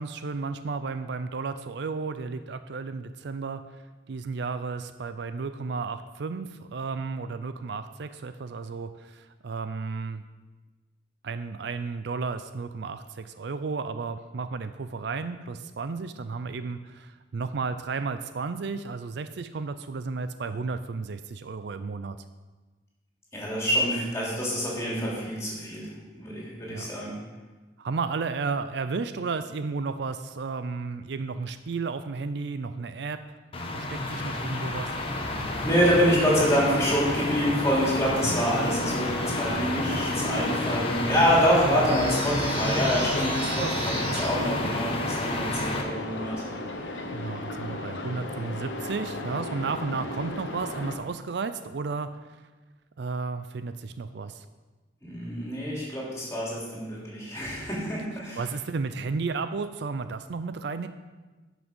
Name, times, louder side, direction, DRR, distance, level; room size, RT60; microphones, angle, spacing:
voice 1, 0.0-3.6 4.1-10.2 11.2-22.2 26.7-26.9 27.8-33.4 33.7-34.9 38.2-38.3 43.6-44.2 47.1-52.1 53.0-54.4 58.4-60.9, right 4 dB, 65° right, 11 dB, 0.5 m, -33 dB
voice 2, 23.3-25.9 26.2-27.2 34.2-34.3 35.6-43.5 43.8-46.4 55.0-58.4, equal, 15° left, -5 dB, 3.1 m, -26 dB
sound 1, 33.5-45.8, left 2 dB, 30° left, 1.2 m, -30 dB
sound 2, 35.8-51.0, left 2 dB, 75° left, 1.2 m, -36 dB
sound 3, 41.9-44.3, right 3 dB, 30° right, 1.6 m, -36 dB
11.0 x 6.2 x 5.4 m, 1.2 s
head